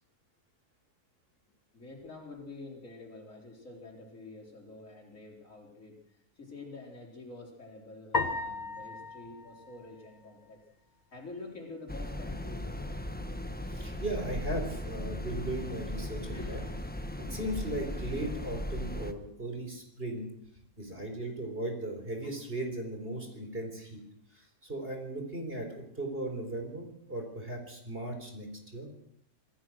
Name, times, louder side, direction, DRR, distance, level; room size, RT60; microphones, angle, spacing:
voice 1, 1.7-10.6 11.1-12.8 16.3-16.7, left 3 dB, 55° left, 0 dB, 4.5 m, -47 dB
sound 1, 8.1-10.6, left 3 dB, 30° left, 1.7 m, -36 dB
sound 2, 11.9-19.1, left 1 dB, 5° left, 1.2 m, -37 dB
voice 2, 13.7-16.6 17.2-20.3 20.8-24.0 24.3-28.9, right 1 dB, 35° right, 4 dB, 4.5 m, -37 dB
25.5 x 16.0 x 6.3 m, 0.73 s
omnidirectional pair, 1.6 m